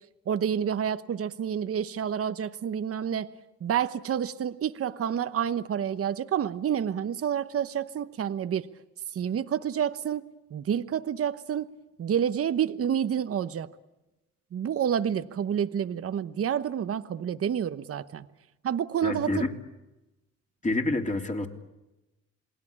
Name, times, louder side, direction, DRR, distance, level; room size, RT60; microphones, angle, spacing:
voice 1, 0.3-3.3 3.6-8.7 9.1-11.7 12.0-13.7 14.5-18.3 18.6-19.5, right 9 dB, 50° right, 12 dB, 1.0 m, -29 dB
voice 2, 19.0-19.5 20.6-21.5, left 2 dB, 25° left, 3 dB, 3.4 m, -27 dB
28.0 x 20.0 x 8.7 m, 1.0 s
cardioid pair, 90°, 30 cm